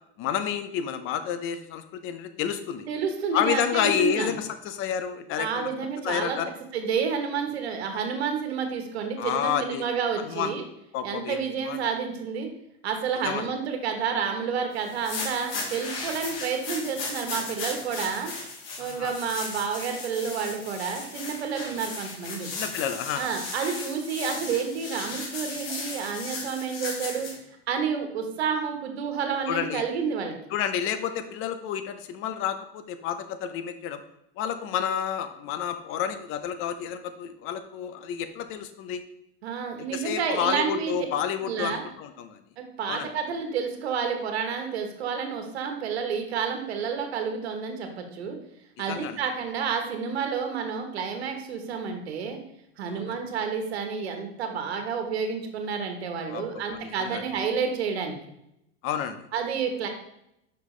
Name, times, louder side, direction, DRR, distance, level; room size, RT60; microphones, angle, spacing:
voice 1, 0.2-2.9 3.3-5.7 6.0-6.5 9.2-9.9 10.2-10.5 10.9-11.8 13.2-13.5 18.8-19.1 22.5-23.3 29.5-29.8 30.5-34.0 34.4-39.0 39.9-42.4 42.9-43.1 48.9-49.2 52.9-53.1 56.3-57.2 58.8-59.2, left 9 dB, 40° left, 10 dB, 0.7 m, -30 dB
voice 2, 2.9-4.3 5.4-6.4 6.7-10.6 11.0-12.5 12.8-18.3 18.8-22.5 23.2-27.3 27.7-30.3 39.4-40.9 41.4-41.8 42.6-48.4 48.8-52.4 52.8-58.1 59.3-59.9, right 6 dB, 90° right, 5 dB, 1.3 m, -30 dB
sound 1, 14.8-27.3, left 3 dB, 70° left, 2.4 m, -36 dB
6.2 x 5.6 x 3.3 m, 0.80 s
supercardioid pair, 120°, 31 cm